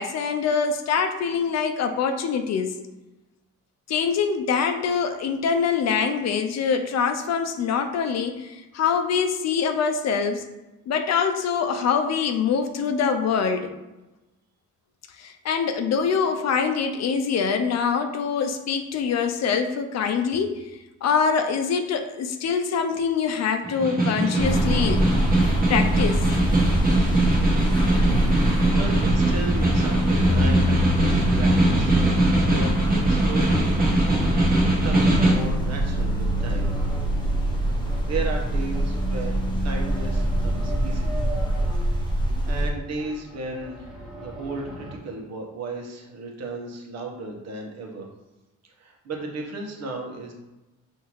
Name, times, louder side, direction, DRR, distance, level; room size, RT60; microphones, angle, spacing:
voice 1, 0.0-2.7 3.9-10.4 10.9-13.7 15.2-20.6 21.0-25.1 25.4-26.3, left 6 dB, 60° left, 7 dB, 0.6 m, -24 dB
Snare drum, 23.6-35.5, right 2 dB, 30° right, 1.3 m, -22 dB
Neighborhood Ambiance, 24.4-42.7, equal, 15° left, 0.9 m, -24 dB
voice 2, 28.7-31.9 32.5-34.1 34.6-36.7 38.1-41.3 41.7-42.0 42.5-48.1 48.8-50.3, right 2 dB, 60° right, 1 dB, 1.0 m, -35 dB
sound 1, 35.0-45.0, right 1 dB, ahead, 1.1 m, -41 dB
5.5 x 2.7 x 3.0 m, 1.0 s
cardioid pair, 90°, 30 cm